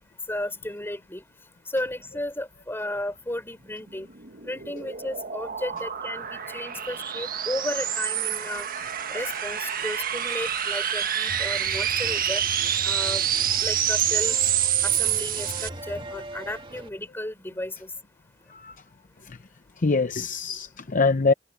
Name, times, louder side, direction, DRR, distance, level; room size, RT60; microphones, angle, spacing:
voice 1, 0.3-1.2 1.7-4.1 4.4-8.7 9.1-12.4 12.8-13.3 13.6-14.4 14.8-17.9, left 1 dB, 15° left, 3.9 m, -33 dB
sound 1, 3.9-15.7, right 10 dB, 50° right, 1.5 m, -27 dB
sound 2, 11.3-16.9, right 1 dB, 30° right, 2.4 m, -40 dB
voice 2, 19.8-21.3, left 4 dB, 45° left, 0.7 m, -24 dB
head